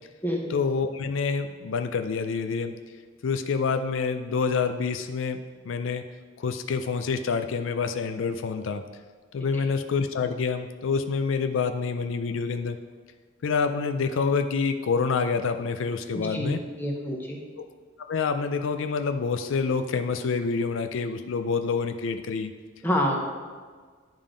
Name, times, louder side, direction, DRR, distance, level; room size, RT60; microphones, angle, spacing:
voice 1, 0.5-2.7 3.2-5.4 5.6-6.0 6.4-8.8 9.3-12.8 13.4-16.6 17.6-17.7 18.1-22.5, left 5 dB, 70° left, 7 dB, 0.4 m, -27 dB
voice 2, 16.1-17.4 22.8-23.2, equal, 10° left, -1 dB, 0.8 m, -27 dB
10.5 x 3.7 x 5.0 m, 1.5 s
head